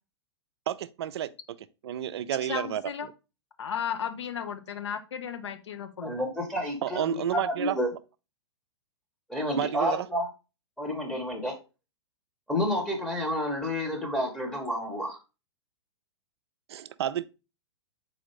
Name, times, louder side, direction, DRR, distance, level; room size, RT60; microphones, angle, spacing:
voice 1, 0.7-1.3 1.8-2.8 6.8-7.8 9.6-10.1 16.7-17.3, right 11 dB, 60° right, 0.4 m, -30 dB
voice 2, 2.5-3.1 3.6-6.1, left 8 dB, 70° left, 0.7 m, -34 dB
voice 3, 6.0-7.9 9.3-10.3 10.8-11.5 12.5-15.2, left 1 dB, 5° left, 0.9 m, -30 dB
4.2 x 3.9 x 3.2 m
figure-of-eight pair, 110°, 15 cm